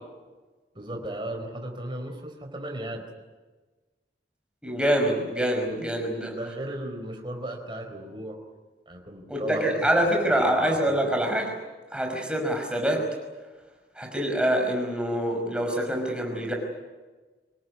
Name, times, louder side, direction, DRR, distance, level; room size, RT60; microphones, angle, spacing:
voice 1, 0.7-3.0 6.3-8.4 8.9-11.0, right 1 dB, 25° right, 3 dB, 4.5 m, -36 dB
voice 2, 4.6-6.3 9.3-11.5 11.9-13.0 14.0-16.5, right 1 dB, 5° right, 1 dB, 5.5 m, -25 dB
25.5 x 19.5 x 9.9 m, 1.3 s
head